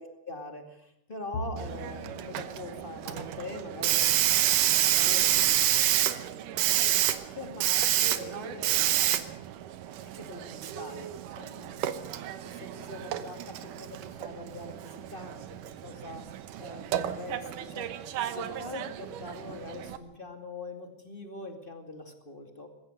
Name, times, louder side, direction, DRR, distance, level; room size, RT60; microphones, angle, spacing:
voice 1, 0.0-9.3 10.1-15.6 15.8-16.2 16.6-17.9 18.3-22.7, left 2 dB, 20° left, 5 dB, 2.0 m, -43 dB
Bowed string instrument, 1.3-4.8, equal, 55° left, 2.4 m, -43 dB
Hiss, 1.6-20.0, right 12 dB, 75° right, 2.5 m, -29 dB
20.5 x 16.5 x 8.0 m, 0.76 s
omnidirectional pair, 3.9 m